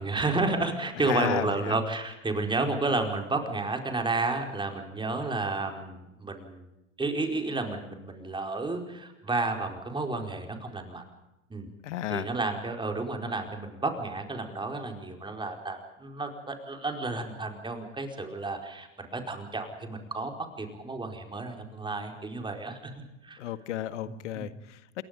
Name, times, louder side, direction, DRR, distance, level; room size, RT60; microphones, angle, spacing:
voice 1, 0.0-6.7 7.0-11.0 11.5-11.7 12.1-23.4 24.1-24.5, right 3 dB, 10° right, 4 dB, 4.7 m, -31 dB
voice 2, 1.0-1.8 11.8-12.3 23.4-25.0, left 13 dB, 70° left, 12 dB, 1.8 m, -33 dB
28.5 x 22.5 x 5.2 m, 0.91 s
hypercardioid pair, 100°, 38 cm